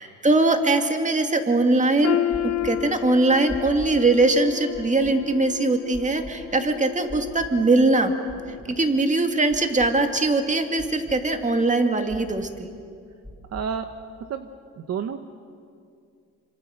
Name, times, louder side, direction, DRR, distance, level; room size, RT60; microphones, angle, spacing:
voice 1, 0.0-2.2 2.4-8.1 8.7-12.7, right 2 dB, 25° right, 5 dB, 2.4 m, -21 dB
sound 1, 2.0-8.0 8.4-8.6 9.4-9.5, left 12 dB, 60° left, 1.2 m, -32 dB
sound 2, 2.3-2.7 3.5-3.9 4.7-5.1 5.9-6.3 7.1-7.5 8.3-8.7 9.5-9.9 10.8-11.2 12.1-12.5 13.2-13.7, left 1 dB, ahead, 4.0 m, -39 dB
voice 2, 13.5-13.9 14.3-15.2, right 7 dB, 55° right, 8 dB, 1.1 m, -31 dB
27.0 x 25.0 x 6.6 m, 2.3 s
cardioid pair, 90°, 30 cm